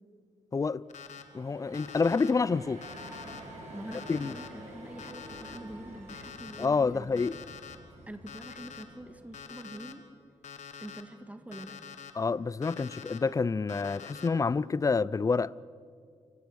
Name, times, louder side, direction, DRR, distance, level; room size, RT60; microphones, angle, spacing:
voice 1, 0.5-0.8 1.3-2.8 4.1-4.3 6.6-7.4 12.2-15.6, left 4 dB, 25° left, 0.4 m, -28 dB
Alarm, 0.9-1.2 1.7-2.3 2.8-3.4 3.9-4.5 5.0-5.6 6.1-6.7 7.2-7.8 8.3-8.8 9.3-9.9 10.4-11.0 11.5-12.1 12.6-13.2 13.7-14.3, left 7 dB, 80° left, 1.4 m, -45 dB
tram arrival, 0.9-9.6, right 1 dB, 70° right, 7.3 m, -49 dB
Bowed string instrument, 2.6-7.4, left 3 dB, 55° left, 4.7 m, -56 dB
voice 2, 3.7-7.1 8.1-10.1 10.8-11.9, right 1 dB, 10° right, 1.8 m, -45 dB
29.0 x 17.0 x 6.4 m
cardioid pair, 85°, 12 cm